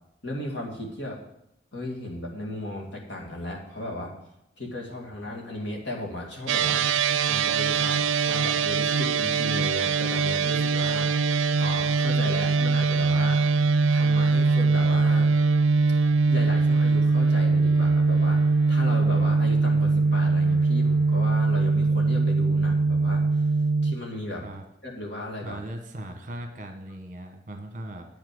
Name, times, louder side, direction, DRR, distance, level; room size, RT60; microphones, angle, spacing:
voice 1, 0.2-1.2 1.7-4.1 4.6-6.8 7.2-13.4 13.9-15.3 16.3-23.2 23.8-24.4 24.8-25.6, left 1 dB, 65° left, -1 dB, 2.4 m, -36 dB
sound 1, 6.5-23.9, right 4 dB, 90° right, 0.4 m, -22 dB
voice 2, 25.4-28.1, right 1 dB, 40° right, 5 dB, 1.2 m, -38 dB
8.8 x 5.8 x 7.8 m, 0.83 s
head